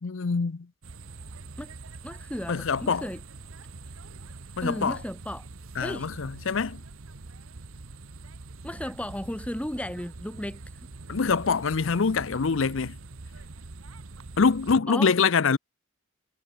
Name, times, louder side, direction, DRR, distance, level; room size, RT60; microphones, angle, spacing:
voice 1, 0.0-0.7 2.5-3.1 4.6-5.0 5.8-6.8 11.1-13.0 14.4-15.6, left 5 dB, 65° left, 0.6 m, -24 dB
sound 1, 0.8-14.8, right 3 dB, 80° right, 1.1 m, -44 dB
voice 2, 2.0-3.2 4.6-5.5 5.8-6.1 8.6-10.6 14.9-15.3, left 1 dB, 5° left, 0.8 m, -34 dB
head